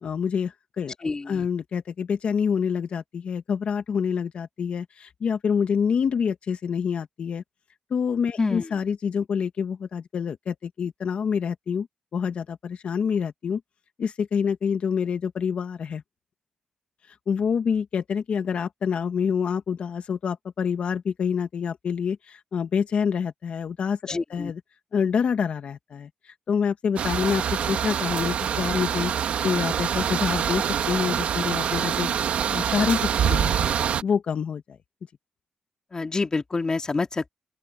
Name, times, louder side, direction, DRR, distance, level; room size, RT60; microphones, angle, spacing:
voice 1, 0.0-7.4 7.9-11.9 12.1-13.6 14.0-16.0 17.1-24.6 24.9-32.1 32.5-33.7 34.0-34.8, left 6 dB, 70° left, 1.6 m, -27 dB
voice 2, 1.0-1.4 8.4-8.6 24.1-24.5 35.9-37.3, left 3 dB, 35° left, 2.3 m, -27 dB
sound 1, 27.0-34.0, right 8 dB, 80° right, 1.5 m, -25 dB
open air
cardioid pair, 75°, 2 cm